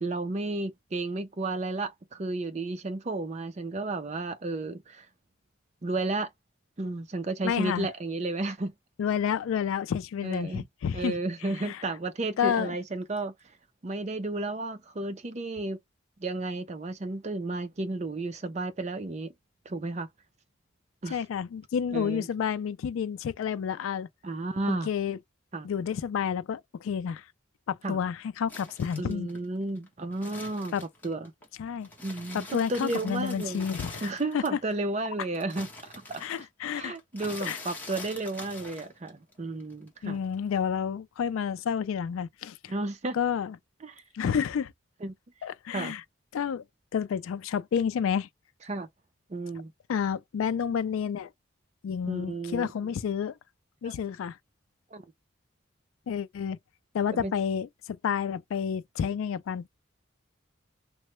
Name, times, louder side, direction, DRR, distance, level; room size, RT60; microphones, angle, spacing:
voice 1, 0.0-5.1 5.8-6.3 6.8-8.7 10.2-10.7 10.9-13.3 13.8-15.8 16.2-19.3 19.7-20.1 21.0-21.2 21.9-22.3 24.2-24.9 25.5-25.7 27.8-28.0 29.0-31.3 32.0-33.7 34.0-36.2 36.7-40.2 42.7-43.2 43.8-44.0 45.0-45.1 45.7-45.9 48.7-48.9 49.3-49.7 52.0-52.7 53.8-53.9 54.9-55.0 57.1-57.3, right 2 dB, 35° right, 0.5 m, -33 dB
voice 2, 7.4-7.9 9.0-11.2 11.6-11.8 12.4-12.8 21.1-24.1 24.7-25.2 25.6-27.2 27.7-29.3 30.7-30.8 31.6-31.9 32.3-34.4 36.2-37.0 37.4-37.6 40.0-42.7 43.1-43.6 44.1-44.7 45.4-46.0 46.3-46.6 46.9-48.3 49.9-51.3 51.8-53.4 53.8-54.4 56.1-56.6 56.9-59.7, left 7 dB, 85° left, 0.3 m, -30 dB
sound 1, 28.5-31.5 31.8-34.7 35.0-39.3 39.6-40.5, left 2 dB, 10° left, 0.9 m, -45 dB
3.1 x 2.1 x 3.0 m
head